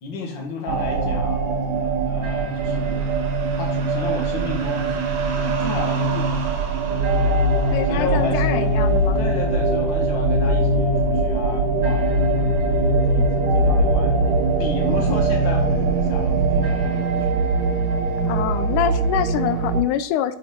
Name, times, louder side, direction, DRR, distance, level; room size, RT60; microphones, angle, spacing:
voice 1, 0.0-3.1 3.5-5.0 5.4-6.6 7.2-7.4 7.9-8.7 9.2-14.2 14.6-17.4 18.7-18.9, left 3 dB, 45° left, 1 dB, 2.1 m, -33 dB
sound 1, 0.7-19.8, right 2 dB, 85° right, 2.8 m, -21 dB
voice 2, 7.7-9.2 18.3-20.4, left 11 dB, 85° left, 12 dB, 2.1 m, -25 dB
6.7 x 6.5 x 4.4 m, 0.72 s
omnidirectional pair, 3.5 m